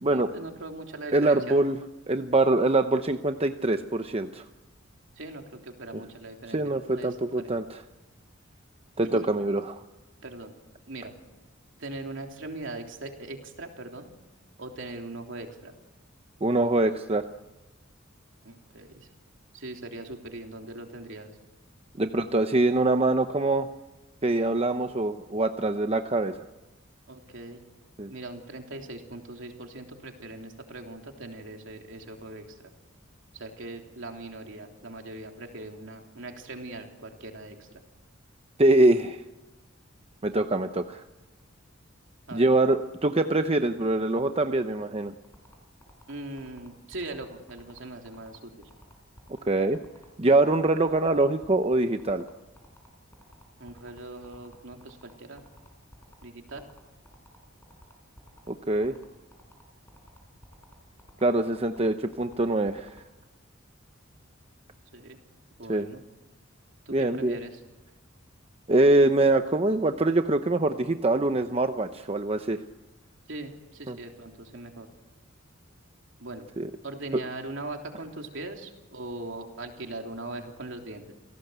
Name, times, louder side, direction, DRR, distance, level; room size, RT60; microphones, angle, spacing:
voice 1, 0.1-1.6 5.1-7.5 9.0-9.3 10.2-10.5 10.9-11.1 11.8-14.1 14.6-15.7 18.4-19.1 19.5-21.3 27.1-27.7 28.1-32.7 33.3-37.8 42.3-42.5 46.1-48.7 53.6-55.4 56.2-56.7 64.9-65.2 65.6-66.0 66.8-67.6 73.3-74.9 76.2-76.4 76.8-81.1, right 2 dB, 65° right, 3 dB, 3.4 m, -40 dB
voice 2, 1.1-1.8 2.1-4.4 6.5-7.8 9.0-9.8 16.4-17.2 22.0-23.7 24.2-26.3 28.0-28.1 38.6-39.2 40.2-41.0 42.3-45.1 49.5-49.8 50.2-52.2 58.5-58.9 61.2-63.0 65.7-65.9 66.9-67.4 68.7-72.6 73.9-74.0 76.6-76.7, right 2 dB, 30° right, 7 dB, 0.8 m, -24 dB
sound 1, 45.2-63.0, equal, 10° left, 4.8 m, -53 dB
28.5 x 17.5 x 8.1 m, 1.1 s
head